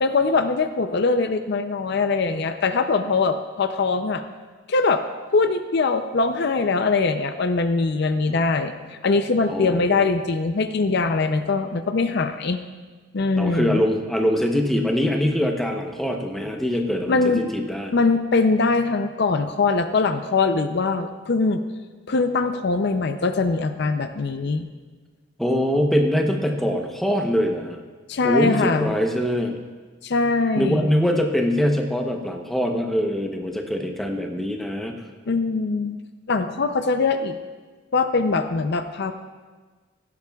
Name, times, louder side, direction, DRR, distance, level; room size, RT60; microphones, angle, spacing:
voice 1, 0.0-4.2 4.7-5.0 5.3-8.7 9.0-12.6 13.1-13.8 17.1-17.5 17.9-21.6 22.1-24.7 28.1-28.9 30.0-30.9 35.3-36.0 36.3-37.4 37.9-39.1, left 3 dB, 55° left, 9 dB, 0.5 m, -22 dB
voice 2, 9.5-10.1 13.4-17.9 25.4-27.8 28.2-29.6 30.6-35.0, equal, ahead, 2 dB, 0.8 m, -23 dB
16.0 x 11.5 x 2.3 m, 1.4 s
head